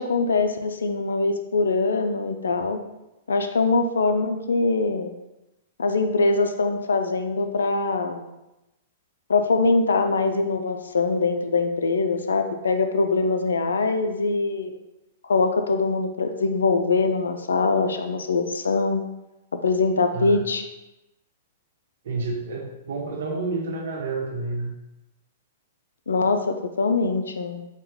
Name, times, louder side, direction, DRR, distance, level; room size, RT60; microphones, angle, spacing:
voice 1, 0.0-2.8 3.3-5.1 5.8-8.3 9.3-14.7 15.2-19.0 19.6-20.6 26.1-27.7, left 3 dB, 90° left, 7 dB, 0.4 m, -23 dB
voice 2, 22.0-24.7, right 3 dB, 70° right, -1 dB, 1.1 m, -29 dB
4.5 x 2.4 x 3.5 m, 0.95 s
hypercardioid pair, 120°, 0 cm